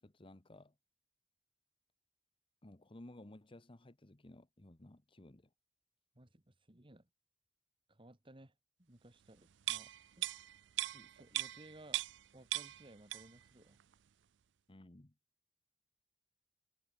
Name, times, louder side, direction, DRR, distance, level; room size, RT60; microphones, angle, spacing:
voice 1, 0.0-0.7 2.6-5.5 14.7-15.1, left 1 dB, 30° left, 1.1 m, -56 dB
voice 2, 6.1-7.1 7.9-10.3 10.9-12.0 12.3-13.8, right 1 dB, 30° right, 2.4 m, -59 dB
sound 1, 9.6-12.3 12.5-13.5 13.8-13.9, right 15 dB, 75° right, 0.4 m, -39 dB
head